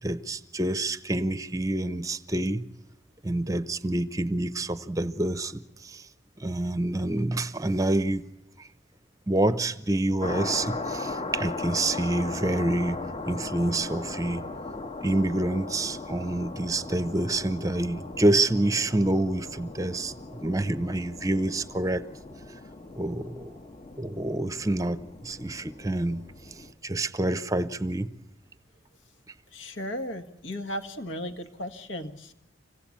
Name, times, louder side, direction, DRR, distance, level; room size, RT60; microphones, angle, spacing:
voice 1, 0.0-2.7 3.2-6.1 6.4-8.2 8.6-8.7 9.3-14.5 15.0-22.0 22.9-23.6 24.0-28.1, right 2 dB, 15° right, 0.7 m, -27 dB
sound 1, 10.2-26.7, left 3 dB, 30° left, 1.1 m, -38 dB
voice 2, 29.5-32.3, equal, 75° left, 1.6 m, -35 dB
25.5 x 16.5 x 8.5 m
head